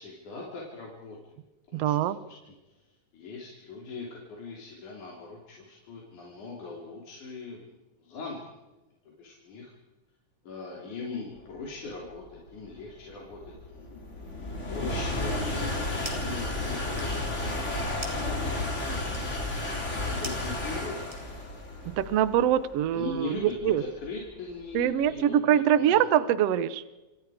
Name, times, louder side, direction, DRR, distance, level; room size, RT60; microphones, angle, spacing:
voice 1, 0.0-1.4 1.7-2.0 2.3-2.4 2.6-7.7 8.0-8.6 9.0-9.7 10.4-13.8 14.7-19.4 20.0-21.3 22.9-25.3 25.7-26.0, left 3 dB, 65° left, -3 dB, 4.9 m, -41 dB
voice 2, 1.7-2.2 21.8-23.8 24.7-26.8, right 10 dB, 65° right, 14 dB, 1.7 m, -24 dB
sound 1, 11.7-25.0, left 2 dB, 20° left, 3.8 m, -33 dB
sound 2, 16.0-16.4 16.7-21.6, right 1 dB, 10° right, 3.3 m, -45 dB
28.5 x 26.5 x 5.1 m, 1.1 s
omnidirectional pair, 3.7 m